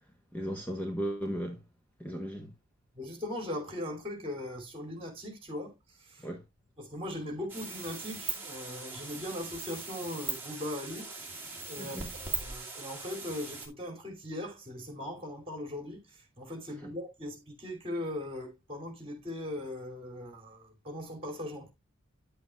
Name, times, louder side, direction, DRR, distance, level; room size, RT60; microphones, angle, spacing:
voice 1, 0.3-1.6 2.0-2.5 6.2-6.4 11.8-12.1 16.8-16.9, equal, 5° left, 0.9 m, -36 dB
voice 2, 2.9-5.7 6.0-6.3 6.8-11.1 11.7-21.7, left 1 dB, 25° right, 2.7 m, -39 dB
sound 1, 7.5-13.7, right 4 dB, 10° right, 2.1 m, -40 dB
9.8 x 7.9 x 2.3 m
head